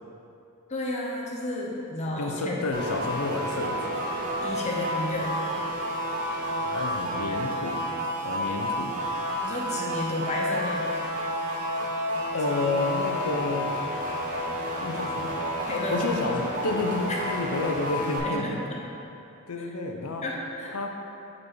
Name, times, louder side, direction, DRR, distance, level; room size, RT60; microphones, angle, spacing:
voice 1, 0.7-2.7 4.4-5.4 9.4-10.9 15.7-16.2 17.1-17.2 18.2-18.8 19.6-19.7 20.2-20.7, left 1 dB, 30° left, -3 dB, 0.7 m, -32 dB
voice 2, 2.1-4.0 6.6-7.8 8.2-8.9 12.3-13.7 14.8-15.4 15.9-18.6 19.5-20.2 20.7-20.9, left 3 dB, 80° left, 3 dB, 0.6 m, -30 dB
sound 1, 2.7-18.2, equal, 40° right, 0.8 m, -30 dB
5.2 x 4.2 x 4.6 m, 2.8 s
head